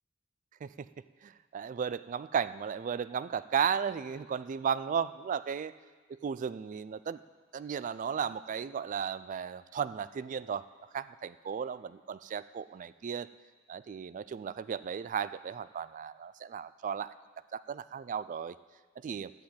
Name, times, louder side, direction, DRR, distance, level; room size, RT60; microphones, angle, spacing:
voice 1, 1.2-5.7 6.1-7.2 7.5-10.7 10.9-13.3 13.7-17.2 17.5-18.6 19.0-19.3, right 7 dB, 40° right, 16 dB, 0.3 m, -35 dB
11.5 x 7.9 x 8.6 m, 1.5 s
head